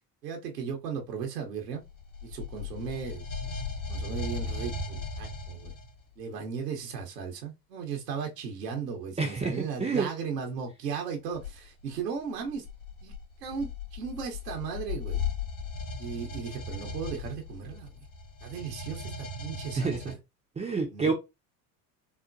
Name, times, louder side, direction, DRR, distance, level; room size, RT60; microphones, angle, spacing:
voice 1, 0.2-1.8 2.2-3.2 3.9-5.7 6.2-12.6 13.0-13.1 13.4-15.2 16.0-17.9 18.4-20.2 20.9-21.1, right 6 dB, 90° right, 0.9 m, -36 dB
sound 1, 1.9-6.0 11.3-11.6 12.4-20.1, left 4 dB, 60° left, 1.9 m, -37 dB
voice 2, 9.2-10.1 19.8-20.0 20.6-21.1, right 4 dB, 15° right, 0.5 m, -28 dB
4.2 x 2.1 x 2.6 m
hypercardioid pair, 75°, 47 cm